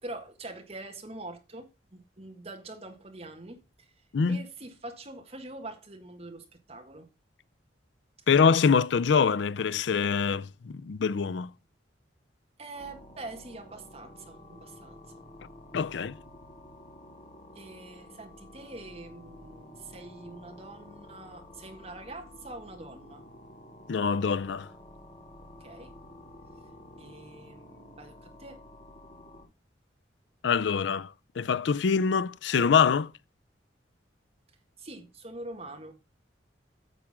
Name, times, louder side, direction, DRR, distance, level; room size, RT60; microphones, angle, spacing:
voice 1, 0.0-7.1 8.2-8.3 12.6-15.0 17.5-23.2 25.6-25.9 27.0-28.6 34.8-35.9, right 2 dB, 35° right, 1.7 m, -44 dB
voice 2, 8.3-11.5 15.7-16.1 23.9-24.7 30.4-31.1 31.4-33.1, left 6 dB, 75° left, 0.4 m, -24 dB
sound 1, 12.7-29.4, left 1 dB, 30° left, 3.3 m, -50 dB
9.1 x 7.4 x 3.6 m
head